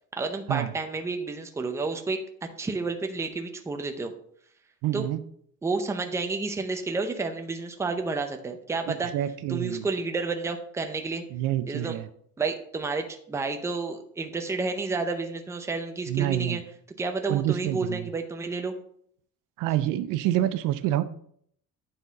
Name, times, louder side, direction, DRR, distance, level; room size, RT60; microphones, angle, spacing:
voice 1, 0.1-2.2 2.6-4.1 4.9-5.1 5.6-9.1 9.5-11.2 11.6-12.0 12.4-16.6 17.0-18.7, right 3 dB, 10° right, 5 dB, 0.6 m, -30 dB
voice 2, 4.8-5.2 8.9-9.9 11.3-12.1 16.1-16.6 17.3-18.1 19.6-21.0, right 13 dB, 80° right, 13 dB, 0.6 m, -27 dB
9.8 x 4.0 x 4.0 m, 0.65 s
cardioid pair, 160°, 32 cm